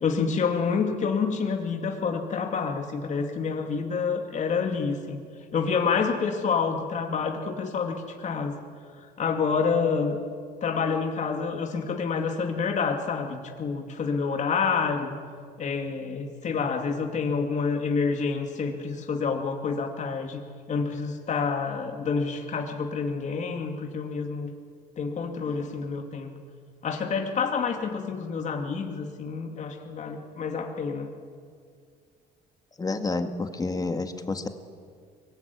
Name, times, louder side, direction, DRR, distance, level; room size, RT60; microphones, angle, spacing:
voice 1, 0.0-5.2 5.5-8.6 9.2-10.2 10.6-15.2 15.6-20.4 20.7-24.5 25.0-26.3 26.8-31.1, left 5 dB, 45° left, 3 dB, 2.6 m, -28 dB
voice 2, 32.8-34.5, left 3 dB, 20° left, 7 dB, 2.1 m, -29 dB
24.0 x 21.5 x 9.6 m, 2.1 s
cardioid pair, 110°, 17 cm